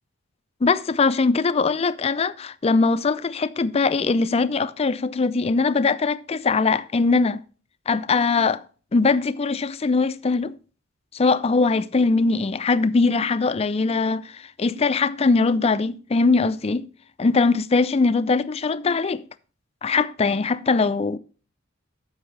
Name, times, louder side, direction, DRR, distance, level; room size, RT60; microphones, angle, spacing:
voice 1, 0.6-7.4 7.9-8.6 8.9-10.6 11.1-16.9 17.2-19.2 19.8-21.2, left 4 dB, 30° left, 0.4 m, -21 dB
13.5 x 5.5 x 3.2 m
head